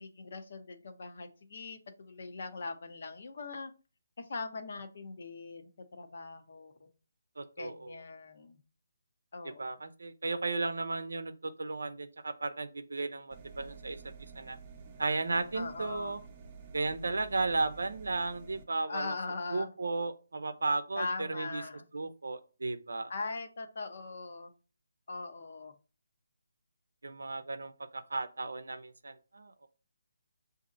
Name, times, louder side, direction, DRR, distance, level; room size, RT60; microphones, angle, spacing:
voice 1, 0.0-3.7 4.2-6.9 7.6-8.6 9.3-9.8 15.5-16.2 18.9-19.7 21.0-21.9 23.1-24.5 25.1-25.7, left 3 dB, 55° left, 6 dB, 0.8 m, -41 dB
voice 2, 7.4-8.0 9.4-14.0 14.3-14.6 15.0-16.2 16.7-19.1 19.5-21.6 21.9-23.1 27.0-29.7, right 3 dB, 80° right, 11 dB, 0.6 m, -35 dB
sound 1, 13.3-18.6, right 5 dB, 25° right, 0.7 m, -50 dB
6.1 x 2.6 x 2.6 m, 0.36 s
hypercardioid pair, 165°, 0 cm